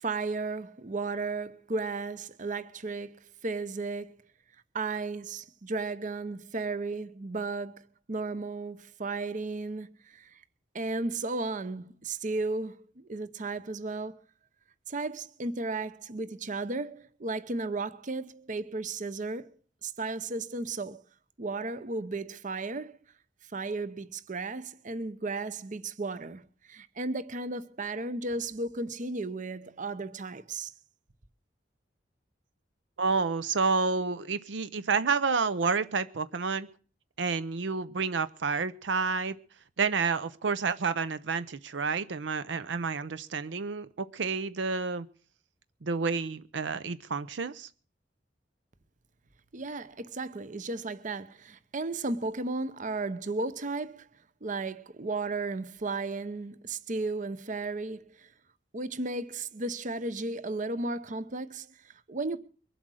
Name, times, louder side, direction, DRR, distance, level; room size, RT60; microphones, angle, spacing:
voice 1, 0.0-4.2 4.7-10.4 10.7-14.1 14.9-21.0 21.4-23.0 23.5-30.7 49.5-54.1 54.4-58.3 58.7-62.4, right 3 dB, 45° right, 0.8 m, -34 dB
voice 2, 33.0-36.7 37.2-39.4 39.8-45.1 45.8-47.7, right 4 dB, 80° right, 0.6 m, -29 dB
23.0 x 8.0 x 6.3 m
head